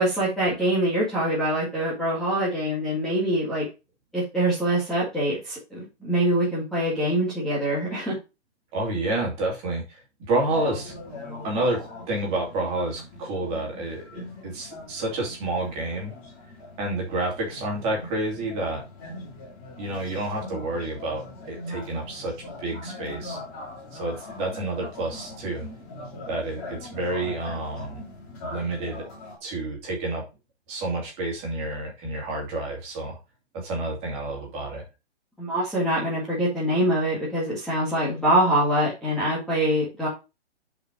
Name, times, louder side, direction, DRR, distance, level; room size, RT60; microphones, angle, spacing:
voice 1, 0.0-3.6 4.1-8.1 35.4-40.1, right 1 dB, ahead, -9 dB, 1.9 m, -24 dB
voice 2, 8.7-10.0 10.3-10.9 11.4-11.8 12.1-16.1 16.8-18.8 19.8-22.3 22.6-23.4 23.9-25.7 26.3-28.0 28.4-29.1 29.4-30.2 30.7-33.2 33.5-34.8, right 2 dB, 20° right, -1 dB, 2.7 m, -29 dB
sound 1, 10.4-29.4, left 2 dB, 20° left, 2.9 m, -41 dB
6.7 x 5.3 x 4.6 m, 0.27 s
hypercardioid pair, 165°, 34 cm